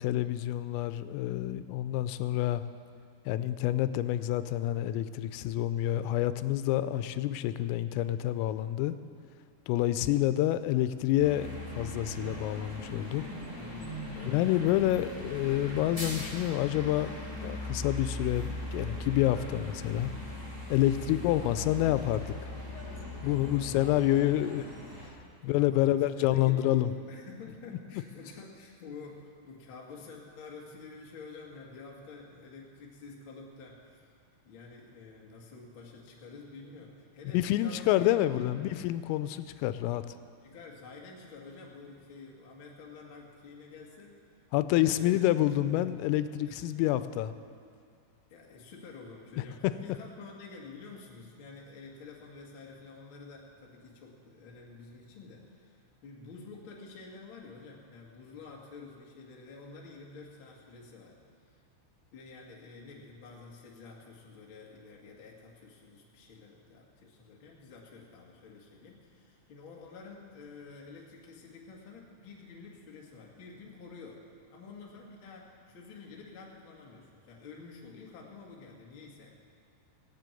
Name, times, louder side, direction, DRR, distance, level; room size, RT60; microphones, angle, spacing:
voice 1, 0.0-2.6 3.3-9.0 9.7-11.5 11.8-13.2 14.2-17.1 17.4-20.1 20.7-22.5 23.2-24.6 25.4-26.9 37.3-40.1 44.5-47.3, left 14 dB, 90° left, 12 dB, 3.2 m, -28 dB
sound 1, 11.2-25.1, left 1 dB, 10° right, 1.0 m, -40 dB
voice 2, 13.5-14.6 20.9-21.3 23.2-24.5 25.4-34.1 34.4-38.7 40.4-44.4 44.7-45.9 46.4-46.6 48.3-61.2 61.4-61.6 62.1-74.2 74.5-79.3, left 4 dB, 60° left, -2 dB, 1.3 m, -49 dB
18.0 x 7.7 x 9.1 m, 2.2 s
omnidirectional pair, 5.9 m